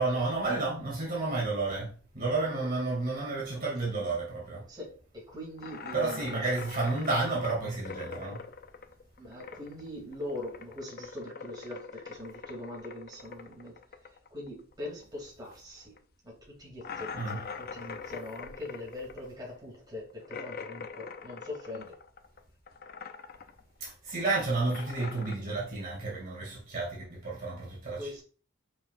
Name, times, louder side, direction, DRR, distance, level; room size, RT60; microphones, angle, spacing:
voice 1, 0.0-4.6 5.9-8.4 17.1-17.4 23.8-28.2, right 3 dB, 45° right, 2.5 m, -31 dB
voice 2, 3.5-4.1 4.7-6.4 9.2-16.0 16.2-22.0 27.9-28.2, left 1 dB, 20° right, 2.7 m, -42 dB
sound 1, 5.6-9.9 10.1-15.2 15.5-15.6 16.0-16.1 16.8-22.4 22.7-23.6 23.9-25.4, left 5 dB, 45° left, 0.5 m, -43 dB
6.7 x 5.6 x 2.5 m
head